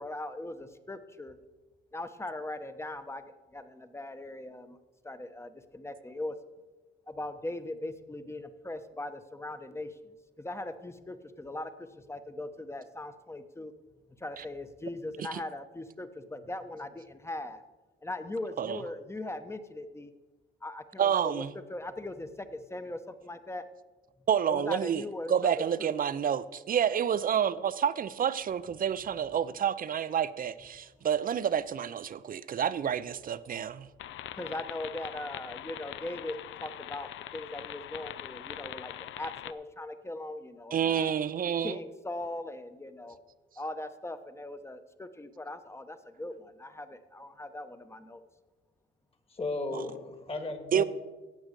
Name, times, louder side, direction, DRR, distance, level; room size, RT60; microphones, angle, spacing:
voice 1, 0.0-1.4 1.9-4.8 5.0-6.4 7.1-13.7 14.2-17.6 18.0-20.1 20.6-21.4 21.7-23.7 24.5-25.9 34.4-41.2 41.6-43.2 43.6-48.2, left 1 dB, 15° left, 0.9 m, -40 dB
voice 2, 21.0-21.5 24.3-25.0 25.3-33.9 40.7-41.8 49.7-49.9 50.7-50.8, right 8 dB, 45° right, 0.5 m, -29 dB
sound 1, 34.0-39.5, left 12 dB, 75° left, 0.5 m, -42 dB
voice 3, 49.3-50.8, left 2 dB, 30° left, 1.8 m, -35 dB
16.5 x 6.2 x 5.2 m
cardioid pair, 90°, 20 cm